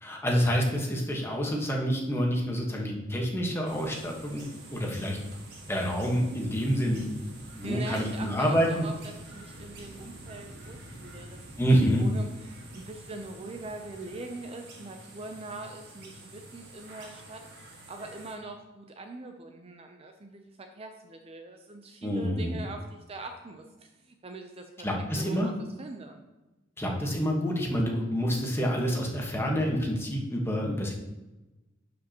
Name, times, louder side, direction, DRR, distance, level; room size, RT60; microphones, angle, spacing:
voice 1, 0.0-4.4 4.7-5.2 5.7-7.0 7.6-8.8 11.6-12.0 22.0-22.6 24.8-25.5 26.8-30.9, equal, 15° left, -1 dB, 1.3 m, -27 dB
sound 1, 3.7-18.4, right 1 dB, 60° right, 1.6 m, -47 dB
voice 2, 7.6-17.4 17.9-25.5 25.8-26.2, right 2 dB, 30° right, 5 dB, 0.5 m, -42 dB
11.0 x 5.1 x 2.9 m, 1.1 s
head